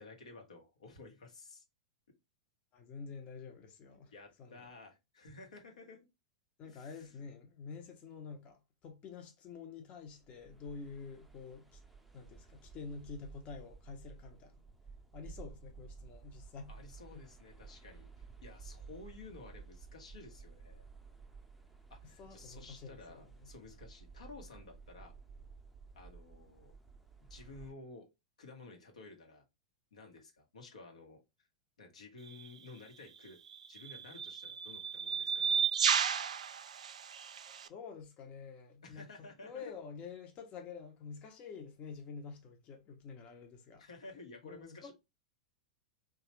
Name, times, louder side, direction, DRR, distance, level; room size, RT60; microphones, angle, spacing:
voice 1, 0.0-1.6 4.1-6.0 6.6-7.1 16.7-20.8 21.9-25.1 25.9-26.7 27.3-28.1 28.4-29.4 29.9-31.5 31.8-33.4 33.7-35.5 38.8-39.7 43.8-44.9, left 3 dB, 85° left, 1.0 m, -53 dB
voice 2, 2.7-4.1 4.4-4.7 6.6-11.8 12.1-14.6 15.1-16.7 17.1-17.3 22.2-23.5 37.5-43.9 44.4-44.9, left 5 dB, 35° left, 0.7 m, -48 dB
sound 1, 10.1-27.7, right 5 dB, 5° right, 0.6 m, -54 dB
sound 2, 32.3-32.5 33.5-37.7, right 7 dB, 80° right, 0.3 m, -33 dB
3.1 x 2.3 x 2.9 m
hypercardioid pair, 105°, 4 cm